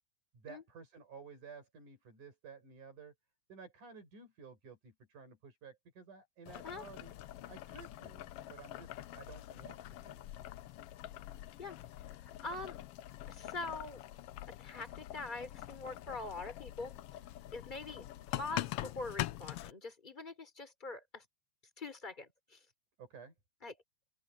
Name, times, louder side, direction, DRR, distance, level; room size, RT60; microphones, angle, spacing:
voice 1, 0.3-3.1 3.5-7.1 7.5-10.3 23.0-23.3, right 5 dB, 85° right, 7.8 m, -53 dB
Boiling, 6.5-19.7, left 14 dB, 85° left, 1.3 m, -44 dB
voice 2, 12.4-12.8 13.3-14.0 14.5-17.0 17.5-21.2 21.8-22.6 23.6-23.8, left 3 dB, 15° left, 3.7 m, -44 dB
open air
omnidirectional pair, 3.5 m